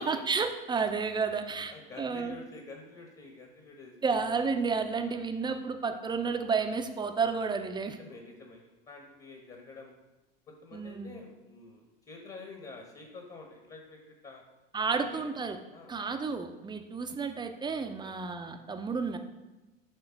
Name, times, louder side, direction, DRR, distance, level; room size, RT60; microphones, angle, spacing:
voice 1, 0.0-2.4 4.0-8.0 10.7-11.2 14.7-15.6 15.9-19.2, right 5 dB, 15° right, 7 dB, 0.6 m, -31 dB
voice 2, 1.7-4.2 4.9-5.2 7.8-9.9 10.5-14.4 15.0-15.3 15.7-15.9 18.0-18.1, left 3 dB, 25° left, 2 dB, 1.2 m, -49 dB
6.7 x 3.7 x 5.8 m, 1.1 s
hypercardioid pair, 85°, 29 cm